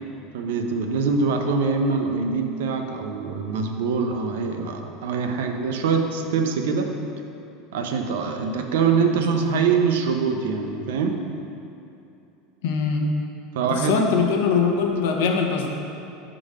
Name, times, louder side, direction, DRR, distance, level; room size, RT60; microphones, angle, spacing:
voice 1, 0.3-6.9 7.7-11.2 13.5-14.0, right 5 dB, 80° right, 4 dB, 0.6 m, -24 dB
voice 2, 12.6-13.1 13.7-15.7, left 5 dB, 70° left, 2 dB, 0.7 m, -22 dB
6.5 x 3.8 x 4.9 m, 2.6 s
supercardioid pair, 165°, 0 cm